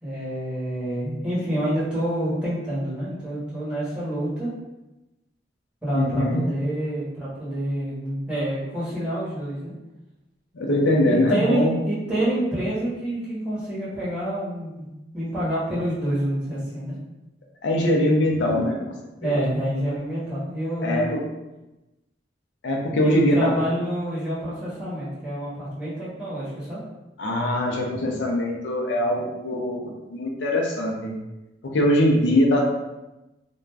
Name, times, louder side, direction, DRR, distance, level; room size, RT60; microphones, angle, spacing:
voice 1, 0.0-4.5 5.8-9.7 11.0-16.9 19.2-21.2 23.0-26.8, right 1 dB, 5° right, -11 dB, 1.0 m, -27 dB
voice 2, 5.9-6.4 10.5-11.8 17.6-18.9 19.2-19.3 20.8-21.2 22.6-23.5 27.2-31.2 31.6-32.6, left 1 dB, 85° left, -1 dB, 0.5 m, -22 dB
2.4 x 2.2 x 3.2 m, 1.0 s
head